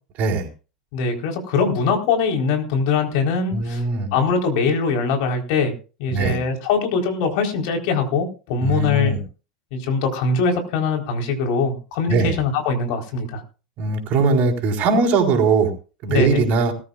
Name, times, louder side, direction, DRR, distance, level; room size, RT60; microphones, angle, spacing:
voice 1, 0.9-3.8 4.1-5.7 6.0-9.1 9.7-13.4 16.1-16.4, left 5 dB, 55° left, 3 dB, 4.1 m, -22 dB
voice 2, 3.5-4.1 6.1-6.4 8.6-9.2 12.1-12.4 13.8-15.7 16.0-16.7, right 4 dB, 45° right, 3 dB, 4.4 m, -20 dB
20.0 x 13.5 x 2.5 m, 0.35 s
figure-of-eight pair, 85°, 4 cm